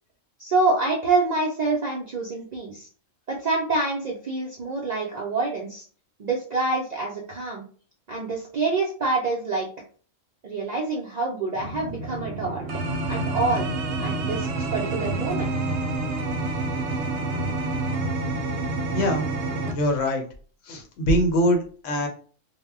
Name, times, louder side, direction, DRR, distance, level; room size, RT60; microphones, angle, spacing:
voice 1, 0.4-2.9 3.3-5.8 6.2-7.7 8.1-9.7 10.4-12.6 13.1-13.7 14.0-15.5, right 3 dB, 80° right, -2 dB, 0.3 m, -26 dB
sound 1, 11.5-19.7, right 2 dB, 65° right, 0.8 m, -28 dB
voice 2, 18.9-19.2 19.7-20.2 20.6-22.1, equal, 70° left, 4 dB, 1.0 m, -23 dB
2.1 x 2.1 x 3.4 m, 0.42 s
omnidirectional pair, 1.3 m